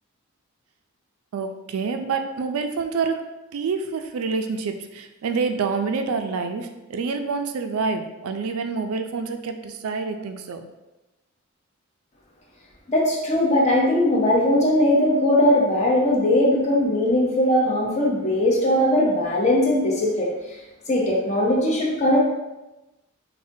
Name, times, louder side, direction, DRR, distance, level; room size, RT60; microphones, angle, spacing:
voice 1, 1.3-3.2 3.5-10.6, right 4 dB, 80° right, 7 dB, 0.4 m, -27 dB
voice 2, 12.9-20.3 20.9-22.2, left 1 dB, 30° left, -3 dB, 0.7 m, -20 dB
4.9 x 2.2 x 2.7 m, 1.0 s
head